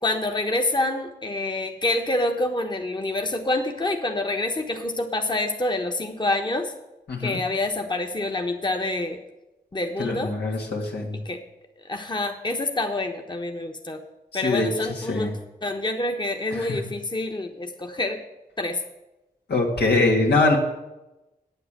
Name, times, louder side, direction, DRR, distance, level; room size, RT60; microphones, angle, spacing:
voice 1, 0.0-6.7 7.2-9.2 9.7-10.3 11.2-11.4 11.9-14.0 14.3-18.2 18.6-18.8, left 2 dB, 25° left, 4 dB, 1.2 m, -27 dB
voice 2, 7.1-7.4 10.0-11.2 14.3-14.7 15.1-15.3 16.5-16.7 19.5-20.6, left 2 dB, 80° left, -1 dB, 2.2 m, -23 dB
8.6 x 7.9 x 7.5 m, 0.98 s
cardioid pair, 45°, 17 cm